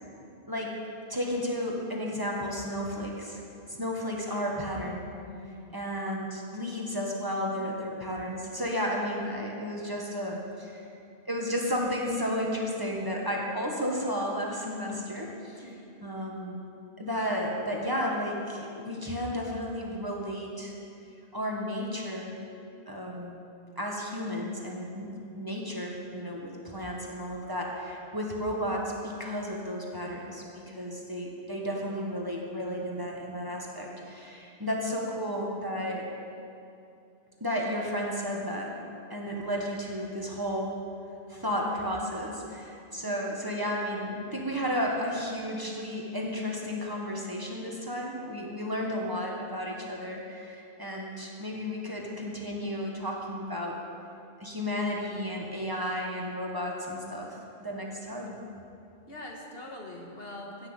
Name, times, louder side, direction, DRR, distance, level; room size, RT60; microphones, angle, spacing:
voice 1, 0.5-0.8 1.1-3.4 3.7-5.0 5.7-10.9 11.3-15.6 16.0-20.7 21.3-22.3 22.9-23.4 23.8-36.1 37.4-38.8 39.1-40.8 41.3-53.8 54.4-58.3, equal, 20° right, -2 dB, 1.6 m, -33 dB
voice 2, 5.2-5.7 15.6-15.9 16.2-16.3 32.3-32.5 43.0-43.2 59.1-60.7, left 1 dB, 65° left, 0 dB, 1.8 m, -44 dB
16.0 x 6.4 x 8.0 m, 2.6 s
omnidirectional pair, 1.1 m